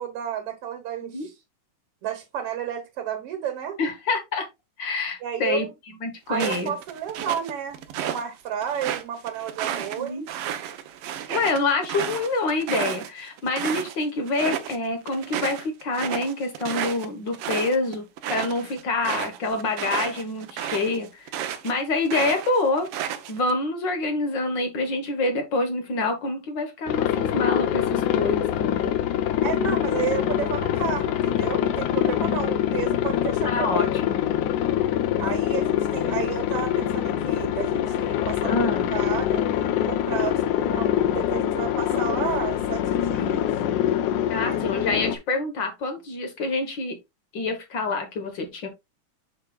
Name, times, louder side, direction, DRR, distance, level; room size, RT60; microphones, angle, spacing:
voice 1, 0.0-1.3 2.0-3.8 5.2-5.7 6.3-10.3 29.4-34.2 35.2-38.6 38.9-39.4 39.9-43.5 44.3-44.6, right 9 dB, 55° right, 1.9 m, -32 dB
voice 2, 3.8-4.5 4.8-5.7 6.0-6.7 10.0-10.3 11.3-18.0 18.3-28.9 33.4-34.3 38.4-38.9 44.3-47.0 47.3-48.7, left 3 dB, 55° left, 1.3 m, -27 dB
sound 1, 6.3-8.2 8.6-13.9 14.3-14.8 15.1-21.7 22.0-23.5, right 10 dB, 85° right, 1.2 m, -32 dB
Aircraft, 26.9-45.2, left 11 dB, 80° left, 2.1 m, -24 dB
7.2 x 6.5 x 2.3 m
omnidirectional pair, 3.6 m